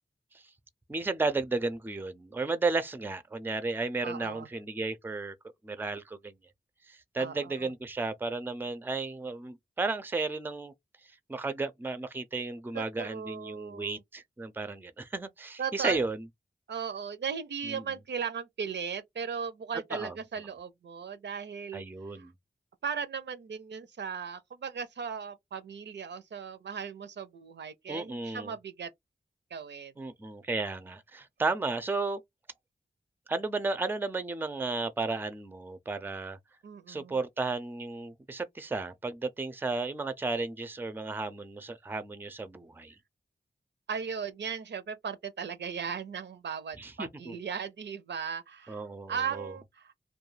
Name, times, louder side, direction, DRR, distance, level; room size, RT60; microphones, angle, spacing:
voice 1, 0.9-5.3 5.6-6.3 6.9-10.7 11.3-16.2 17.6-17.8 19.9-20.1 21.7-22.3 27.9-28.5 30.0-32.2 33.3-36.4 36.9-42.9 46.8-47.3 48.7-49.5, right 3 dB, 10° right, 0.4 m, -33 dB
voice 2, 4.0-4.5 7.2-7.5 12.7-14.0 15.6-16.0 16.7-21.8 22.2-22.3 22.8-28.9 29.5-29.9 36.6-37.2 43.9-49.9, right 6 dB, 75° right, 0.5 m, -37 dB
2.3 x 2.2 x 3.1 m
wide cardioid pair, 65°, 18 cm